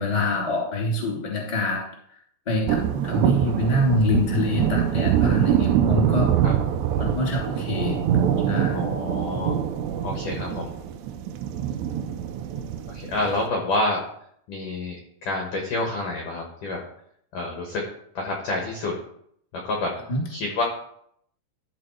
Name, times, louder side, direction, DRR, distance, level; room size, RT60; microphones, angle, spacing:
voice 1, 0.0-1.8 2.4-6.3 7.0-8.0 8.5-8.8 20.1-20.2, left 1 dB, 15° left, -2 dB, 1.5 m, -25 dB
sound 1, 2.7-13.5, right 9 dB, 80° right, 2.4 m, -24 dB
voice 2, 8.7-9.6 10.0-10.7 12.9-14.0 14.5-16.8 17.3-17.8 18.1-18.9 19.5-19.9 20.3-20.6, left 2 dB, 70° left, 0 dB, 2.0 m, -28 dB
13.5 x 4.6 x 4.7 m, 0.69 s
omnidirectional pair, 5.7 m